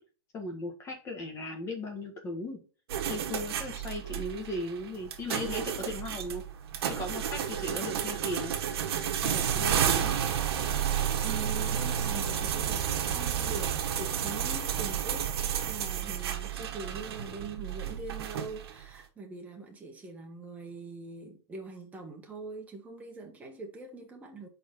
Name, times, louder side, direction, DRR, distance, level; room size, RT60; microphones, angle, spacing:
voice 1, 0.3-2.6 3.0-6.4 6.9-8.5 9.2-10.2, left 1 dB, 20° left, 1.6 m, -37 dB
sound 1, 2.9-18.8, right 8 dB, 75° right, 1.2 m, -31 dB
voice 2, 9.3-9.6 11.2-24.5, right 4 dB, 10° right, 1.3 m, -43 dB
4.9 x 4.3 x 5.2 m
supercardioid pair, 160°, 13 cm